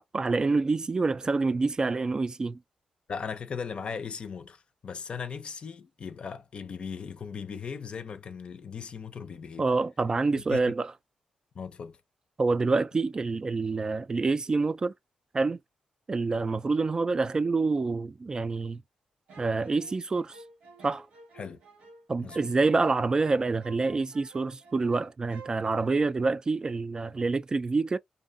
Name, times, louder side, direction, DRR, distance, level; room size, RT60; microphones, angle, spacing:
voice 1, 0.1-2.6 9.6-10.9 12.4-14.9 15.3-15.6 16.1-18.8 19.4-20.4 20.8-21.1 22.1-28.0, right 3 dB, 35° right, 0.3 m, -27 dB
voice 2, 3.1-9.7 10.5-10.7 11.5-12.0 21.3-21.6 22.2-22.5, left 6 dB, 55° left, 0.5 m, -38 dB
sound 1, 19.3-25.0 25.3-25.9, right 4 dB, 90° right, 1.2 m, -51 dB
2.6 x 2.3 x 2.5 m
cardioid pair, 70°, 2 cm